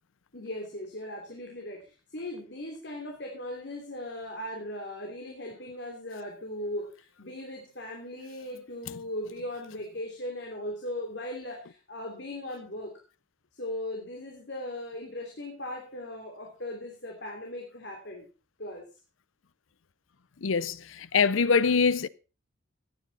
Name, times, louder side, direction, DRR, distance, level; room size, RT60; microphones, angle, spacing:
voice 1, 0.3-12.9 13.5-18.2 18.6-18.8, left 1 dB, 60° left, 3.0 m, -38 dB
voice 2, 20.4-22.1, left 5 dB, 85° left, 0.6 m, -24 dB
16.5 x 9.5 x 4.1 m
head